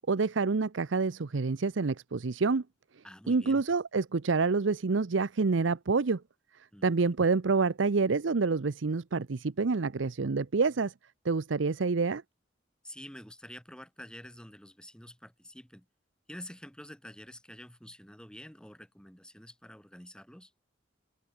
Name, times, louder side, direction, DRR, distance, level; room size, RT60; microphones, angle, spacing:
voice 1, 0.1-2.6 3.3-6.2 6.8-10.9 11.2-12.2, right 4 dB, 75° right, 0.7 m, -27 dB
voice 2, 3.0-3.6 6.7-7.1 12.8-15.9 16.3-20.5, left 1 dB, 5° left, 2.3 m, -48 dB
open air
head